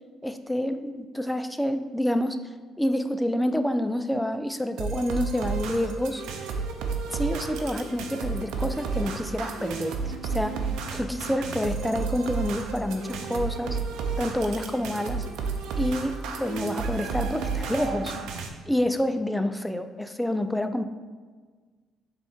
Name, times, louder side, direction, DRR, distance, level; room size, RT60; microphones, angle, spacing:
voice 1, 0.2-2.4 2.8-6.2 7.1-10.6 10.9-13.8 14.2-15.3 15.8-18.1 18.7-20.8, left 1 dB, 5° left, 8 dB, 0.4 m, -28 dB
sound 1, 4.8-18.5, right 5 dB, 90° right, 0.7 m, -32 dB
7.0 x 3.6 x 4.3 m, 1.5 s
cardioid pair, 120°, 0 cm